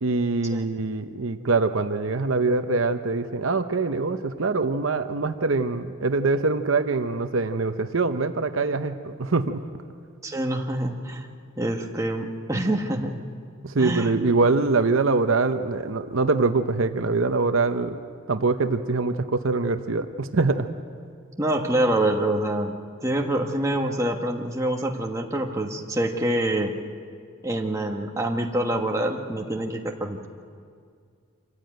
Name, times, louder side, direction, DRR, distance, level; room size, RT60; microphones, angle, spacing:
voice 1, 0.0-9.6 13.6-18.0 18.3-20.7, right 3 dB, 65° right, 8 dB, 0.8 m, -24 dB
voice 2, 10.2-11.3 11.6-13.2 13.8-14.1 21.4-22.8 23.0-26.7 27.4-30.3, right 1 dB, 15° right, 1 dB, 1.4 m, -26 dB
26.0 x 15.0 x 9.0 m, 2.2 s
head